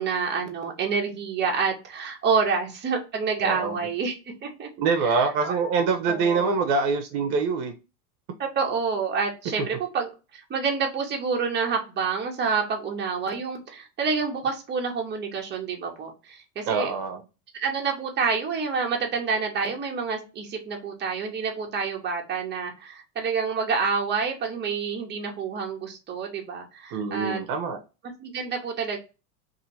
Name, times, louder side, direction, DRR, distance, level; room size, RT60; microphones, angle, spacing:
voice 1, 0.0-4.7 5.0-5.5 6.1-6.4 8.4-16.9 17.5-27.4 28.2-29.0, right 5 dB, 20° right, 1.0 m, -28 dB
voice 2, 3.4-3.8 4.8-7.7 16.7-17.2 26.9-27.8, right 4 dB, 50° right, 0.8 m, -25 dB
2.7 x 2.7 x 4.1 m
hypercardioid pair, 110°, 50 cm